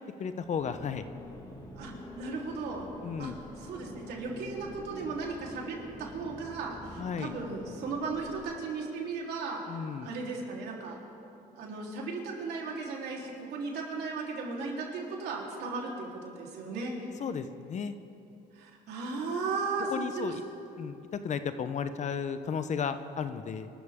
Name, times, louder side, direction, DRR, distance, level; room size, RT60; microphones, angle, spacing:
voice 1, 0.2-1.1 3.0-3.4 7.0-7.3 9.7-10.1 17.2-18.0 19.9-20.4 20.8-21.0 21.2-23.7, left 6 dB, 45° left, 11 dB, 0.8 m, -34 dB
sound 1, 0.6-8.4, left 1 dB, 20° left, 2.3 m, -47 dB
voice 2, 1.7-2.9 3.2-9.6 10.0-11.0 11.6-16.9 18.5-20.4, right 4 dB, 75° right, -2 dB, 3.6 m, -36 dB
26.0 x 13.5 x 3.7 m, 2.8 s
cardioid pair, 110°, 17 cm